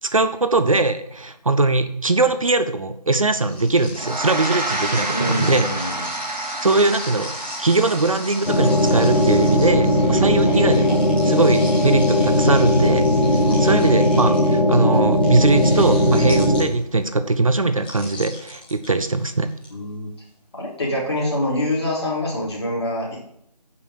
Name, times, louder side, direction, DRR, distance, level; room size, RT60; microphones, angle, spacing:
voice 1, 0.0-5.7 6.6-19.5, right 3 dB, 55° right, 10 dB, 0.8 m, -21 dB
sound 1, 3.4-17.0 17.8-19.7, left 2 dB, 15° left, 2.0 m, -36 dB
Gong, 4.0-13.6, right 2 dB, 90° right, 1.6 m, -32 dB
voice 2, 5.1-6.1 10.5-10.8 13.4-13.9 19.7-20.1 20.5-23.2, left 1 dB, 40° left, -3 dB, 3.7 m, -26 dB
sound 2, 8.5-16.6, left 1 dB, 85° left, 2.4 m, -18 dB
9.8 x 5.7 x 6.5 m, 0.72 s
figure-of-eight pair, 170°, 21 cm